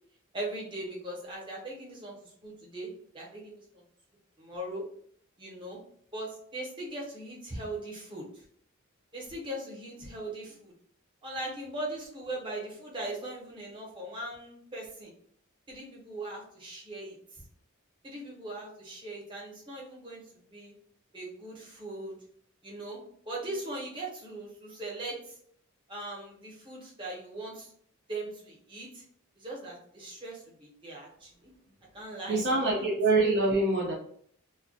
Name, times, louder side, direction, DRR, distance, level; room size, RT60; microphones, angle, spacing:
voice 1, 0.3-3.8 4.4-4.8 5.4-5.8 6.1-8.4 9.1-10.7 11.2-15.1 15.7-17.4 18.0-20.7 21.1-22.1 22.6-23.0 23.3-25.4 25.9-27.7 28.1-29.0 29.4-31.5 31.9-32.6, right 1 dB, 25° right, -3 dB, 0.7 m, -40 dB
voice 2, 32.3-33.9, right 2 dB, 50° right, -2 dB, 0.4 m, -25 dB
2.2 x 2.1 x 2.6 m, 0.62 s
head